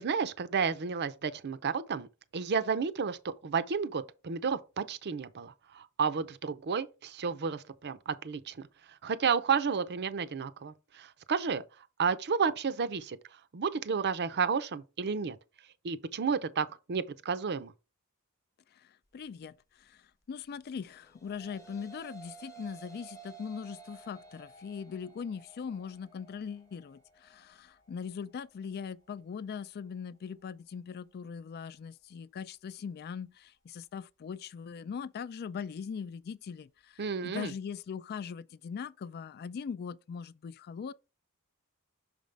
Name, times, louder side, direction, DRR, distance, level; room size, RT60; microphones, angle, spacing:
voice 1, 0.0-2.1 2.3-8.7 9.0-11.6 12.0-13.2 13.5-15.4 15.8-17.7 37.0-37.5, right 6 dB, 50° right, 0.5 m, -31 dB
voice 2, 19.1-19.5 19.9-20.0 20.3-40.9, left 6 dB, 45° left, 0.3 m, -40 dB
sound 1, 20.9-30.1, right 5 dB, 15° left, 0.8 m, -54 dB
6.2 x 5.2 x 3.3 m
head